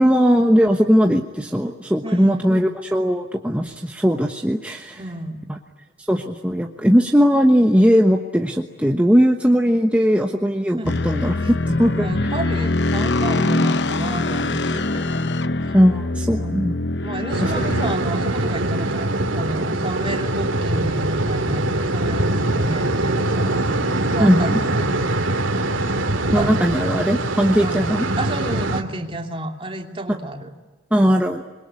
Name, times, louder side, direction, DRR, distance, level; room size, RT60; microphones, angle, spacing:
voice 1, 0.0-5.0 5.5-5.6 6.1-10.8 11.0-11.3 11.7-12.1 15.7-16.7 17.4-17.5 24.2-24.6 26.3-28.1 30.1-30.2 30.9-31.4, equal, 5° right, 2 dB, 1.2 m, -18 dB
voice 2, 2.0-2.6 4.9-5.5 10.8-11.0 11.4-11.5 11.9-15.1 15.6-15.8 16.3-16.5 17.0-23.6 24.1-25.5 26.2-26.6 27.6-27.9 28.2-30.5, right 1 dB, 25° right, 3 dB, 2.8 m, -31 dB
sound 1, 10.8-18.0, left 2 dB, 55° left, 0.8 m, -23 dB
sound 2, 17.3-28.8, right 2 dB, 80° right, 2.6 m, -23 dB
27.0 x 22.0 x 9.8 m, 1.3 s
head